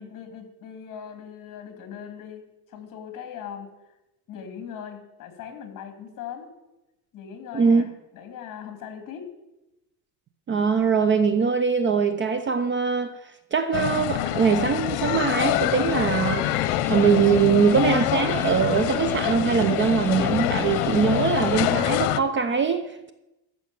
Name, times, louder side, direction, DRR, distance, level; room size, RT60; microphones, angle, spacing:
voice 1, 0.0-3.7 4.3-6.5 7.1-9.3, left 8 dB, 45° left, 2.8 m, -40 dB
voice 2, 10.5-13.2 13.5-16.5 16.9-23.1, right 6 dB, 25° right, 0.7 m, -22 dB
sound 1, 13.7-22.2, left 14 dB, 80° left, 0.9 m, -25 dB
Electric guitar, 15.5-21.9, left 2 dB, 5° left, 1.1 m, -36 dB
14.0 x 6.3 x 9.0 m
cardioid pair, 140°, 44 cm